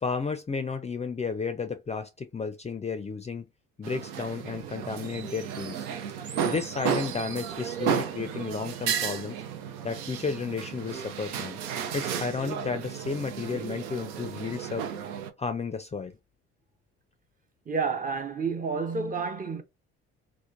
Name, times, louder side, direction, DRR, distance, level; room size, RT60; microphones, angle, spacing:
voice 1, 0.0-3.4 3.8-5.9 6.4-9.4 9.8-11.6 11.9-14.8 15.4-16.1, left 5 dB, 20° left, 0.5 m, -32 dB
sound 1, 3.8-15.3, right 8 dB, 75° right, 0.6 m, -33 dB
sound 2, 6.2-9.2, right 5 dB, 45° right, 1.0 m, -48 dB
voice 2, 17.7-19.6, right 5 dB, 25° right, 0.6 m, -30 dB
3.0 x 2.1 x 2.4 m
hypercardioid pair, 55°, 35 cm